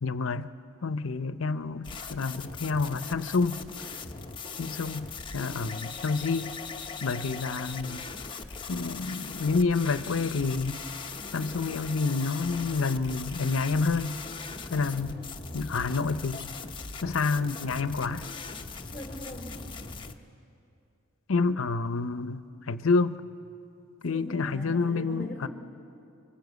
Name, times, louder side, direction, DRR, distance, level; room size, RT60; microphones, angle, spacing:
voice 1, 0.0-0.5 0.8-3.6 4.6-5.1 5.3-6.6 7.0-8.0 8.7-10.8 11.3-14.2 14.7-15.2 15.5-16.5 17.0-18.3 21.3-23.2 24.0-25.5, left 4 dB, 70° left, 12 dB, 0.7 m, -28 dB
sound 1, 1.8-20.1, left 4 dB, 25° left, 0.9 m, -40 dB
voice 2, 18.9-19.7 24.0-25.5, equal, 5° left, -1 dB, 3.3 m, -41 dB
25.0 x 23.0 x 8.2 m, 2.6 s
head